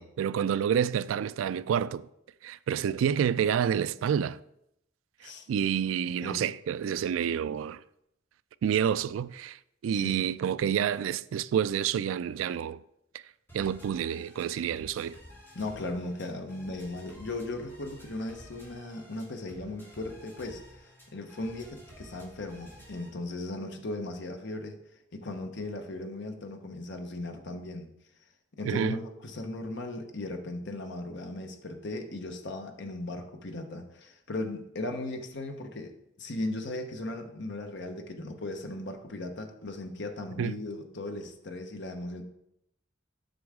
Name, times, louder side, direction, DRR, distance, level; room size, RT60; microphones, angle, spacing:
voice 1, 0.2-2.0 2.4-4.4 5.5-7.8 8.6-12.8 13.5-15.2 28.6-29.0 40.4-40.5, right 8 dB, 85° right, 0.3 m, -28 dB
voice 2, 9.9-10.3 15.5-24.8 25.1-27.9 28.6-35.9 36.2-42.2, left 2 dB, 65° left, 1.0 m, -37 dB
sound 1, 13.5-23.1, equal, 10° left, 2.1 m, -52 dB
7.8 x 6.2 x 3.6 m
head